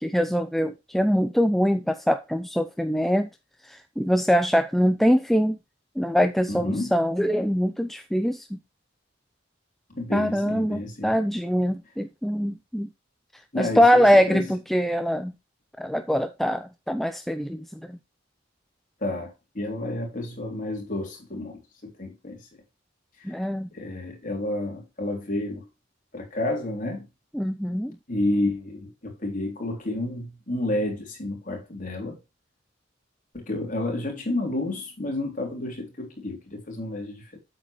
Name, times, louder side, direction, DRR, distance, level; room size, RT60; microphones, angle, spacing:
voice 1, 0.0-3.3 3.7-5.6 6.0-8.5 10.1-12.9 13.6-15.3 15.8-18.0 23.2-23.7 27.3-27.9, equal, ahead, 0.5 m, -23 dB
voice 2, 6.5-6.9 9.9-11.2 13.5-14.5 19.0-22.5 23.2-23.4 23.7-25.7 26.1-27.1 28.1-32.2 33.3-37.4, left 1 dB, 40° left, 3.7 m, -30 dB
8.5 x 7.5 x 3.2 m
head